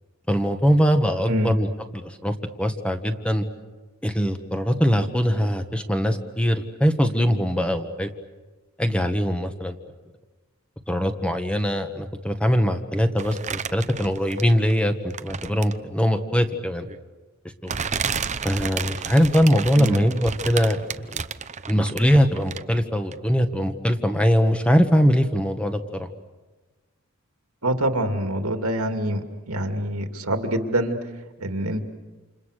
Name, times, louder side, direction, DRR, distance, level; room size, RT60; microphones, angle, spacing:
voice 1, 0.3-1.7 1.9-3.4 4.0-8.1 8.8-9.7 10.9-16.9 17.6-17.7 18.4-21.2 21.7-26.1, equal, 5° left, 6 dB, 1.6 m, -22 dB
sound 1, 13.2-14.7 15.1-15.9 16.9-17.0 17.7-22.8 23.1-23.2, right 6 dB, 35° right, 0.8 m, -31 dB
voice 2, 27.6-30.9 31.4-31.9, right 1 dB, 80° right, 5 dB, 2.5 m, -25 dB
29.0 x 28.0 x 6.7 m, 1.2 s
head